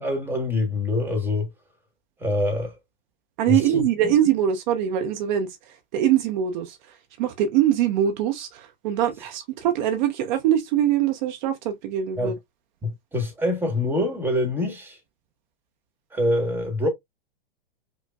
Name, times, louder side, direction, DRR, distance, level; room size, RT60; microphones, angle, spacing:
voice 1, 0.0-1.5 2.2-2.7 3.5-3.8 12.2-12.3 12.8-15.0 16.1-16.9, left 1 dB, 5° right, 1.2 m, -25 dB
voice 2, 3.4-12.4, right 10 dB, 50° right, 0.7 m, -23 dB
5.2 x 2.2 x 2.3 m
hypercardioid pair, 125°, 30 cm